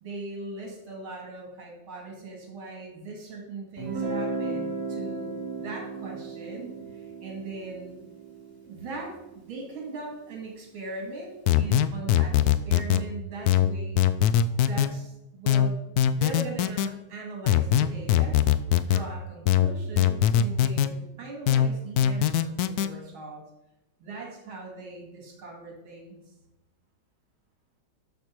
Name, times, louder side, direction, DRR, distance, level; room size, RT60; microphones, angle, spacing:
voice 1, 0.0-7.9 8.6-14.0 14.5-15.8 16.1-18.4 18.8-23.4 24.0-26.2, right 3 dB, 80° right, 0 dB, 3.0 m, -40 dB
Guitar, 3.8-9.5, right 3 dB, 10° right, 3.4 m, -35 dB
sound 1, 11.5-13.0 13.5-14.9 15.5-16.9 17.5-19.0 19.5-20.9 21.5-22.9, left 10 dB, 85° left, 0.8 m, -21 dB
12.5 x 6.7 x 4.6 m, 0.91 s
omnidirectional pair, 2.2 m